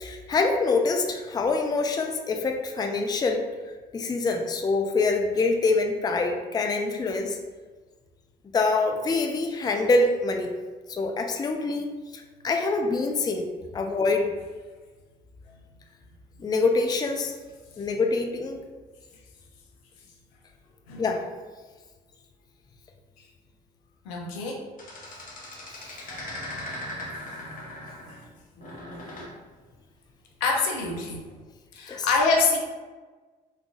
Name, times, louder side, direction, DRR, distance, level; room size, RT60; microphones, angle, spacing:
voice 1, 0.0-3.4 3.9-7.4 8.5-10.5 10.9-13.5 13.7-14.3 16.4-17.4 17.8-18.6 21.0-21.2 31.9-32.1, left 3 dB, 20° left, 4 dB, 0.4 m, -25 dB
voice 2, 24.0-24.6 26.7-26.8 30.4-31.2 31.7-32.6, left 4 dB, 75° left, 0 dB, 0.6 m, -25 dB
sound 1, 24.8-28.3 28.6-29.3 31.1-31.3, left 1 dB, 40° left, 1.0 m, -39 dB
3.5 x 3.2 x 2.4 m, 1.3 s
figure-of-eight pair, 50°, 21 cm